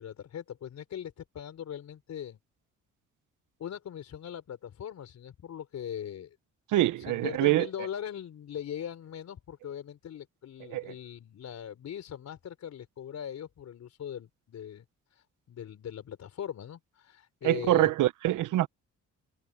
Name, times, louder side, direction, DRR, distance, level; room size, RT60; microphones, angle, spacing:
voice 1, 0.0-2.4 3.6-6.4 7.0-14.8 15.1-17.9 18.5-18.6, left 9 dB, 65° left, 4.6 m, -40 dB
voice 2, 6.7-7.7 10.7-10.9 17.4-18.7, right 15 dB, 80° right, 0.9 m, -25 dB
cardioid pair, 90°, 30 cm